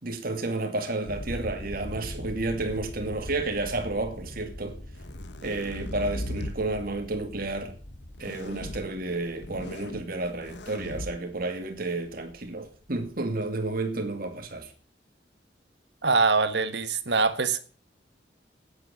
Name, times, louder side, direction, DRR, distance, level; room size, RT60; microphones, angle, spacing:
voice 1, 0.0-4.8 5.4-7.8 8.2-14.7, right 2 dB, 55° right, 2.2 m, -31 dB
sound 1, 1.0-14.7, left 1 dB, 60° left, 2.3 m, -43 dB
sound 2, 3.1-3.8 4.7-6.6 8.1-8.8 9.3-10.0 10.4-11.1, left 1 dB, 85° left, 1.1 m, -38 dB
voice 2, 16.0-17.6, right 4 dB, 75° right, 1.4 m, -23 dB
9.5 x 9.0 x 8.7 m
head